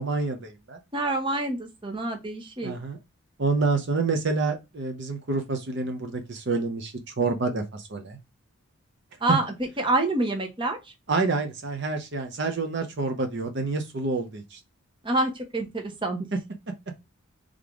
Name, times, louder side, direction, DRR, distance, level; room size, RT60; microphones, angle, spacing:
voice 1, 0.0-0.8 2.6-3.0 3.4-8.2 11.1-14.6, right 3 dB, 55° right, 0.8 m, -28 dB
voice 2, 0.9-2.7 9.2-10.9 15.0-16.3, right 2 dB, 25° right, 0.9 m, -27 dB
3.6 x 3.4 x 3.6 m
head